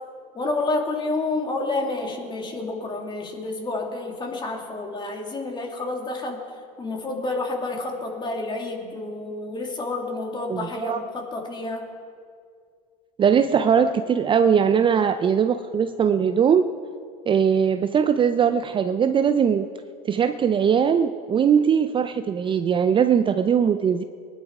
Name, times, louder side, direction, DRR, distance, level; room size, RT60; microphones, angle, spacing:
voice 1, 0.3-6.4 6.8-11.9, left 2 dB, 25° left, 1 dB, 2.9 m, -29 dB
voice 2, 10.5-11.0 13.2-16.7 17.3-19.7 20.0-24.0, right 7 dB, 25° right, 10 dB, 0.5 m, -20 dB
20.5 x 11.0 x 4.8 m, 2.1 s
hypercardioid pair, 95°, 19 cm